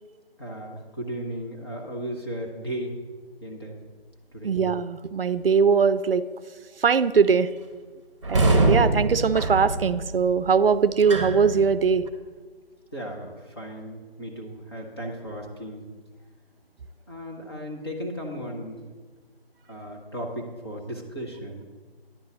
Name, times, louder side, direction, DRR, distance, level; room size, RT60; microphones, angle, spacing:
voice 1, 0.4-2.9 3.4-3.7 4.3-4.6 12.9-15.9 17.1-18.9 19.7-21.6, equal, 25° left, -2 dB, 0.8 m, -35 dB
voice 2, 4.4-6.3 6.8-7.5 8.3-12.0, right 6 dB, 65° right, 15 dB, 0.5 m, -21 dB
sound 1, 8.2-12.1, right 2 dB, 30° right, 0.9 m, -24 dB
10.0 x 3.8 x 6.9 m, 1.4 s
figure-of-eight pair, 160°, 31 cm